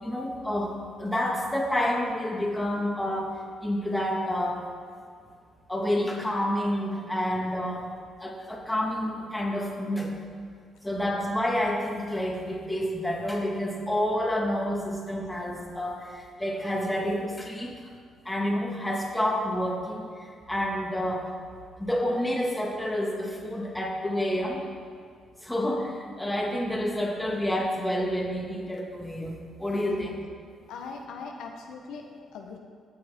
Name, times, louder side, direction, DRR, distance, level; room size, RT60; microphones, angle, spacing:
voice 1, 0.0-3.3 3.6-4.6 5.7-7.9 8.2-10.1 10.8-17.8 18.3-20.1 20.5-21.3 21.8-24.6 25.4-30.2, left 1 dB, 10° left, -1 dB, 1.8 m, -29 dB
voice 2, 30.7-32.6, left 4 dB, 85° left, 3 dB, 0.9 m, -41 dB
16.0 x 6.2 x 3.6 m, 2.2 s
cardioid pair, 90°, 0 cm